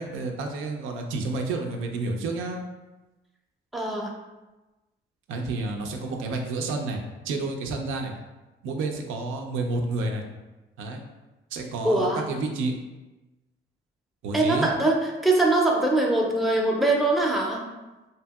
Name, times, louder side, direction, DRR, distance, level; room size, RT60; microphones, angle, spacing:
voice 1, 0.0-2.6 5.3-7.0 7.2-8.1 8.6-10.2 10.8-11.0 11.5-12.8 14.2-14.7, right 3 dB, 85° right, 2 dB, 0.4 m, -30 dB
voice 2, 3.7-4.1 11.8-12.3 14.3-17.6, right 2 dB, ahead, -1 dB, 0.4 m, -22 dB
2.7 x 2.6 x 2.3 m, 1.1 s
cardioid pair, 90°, 20 cm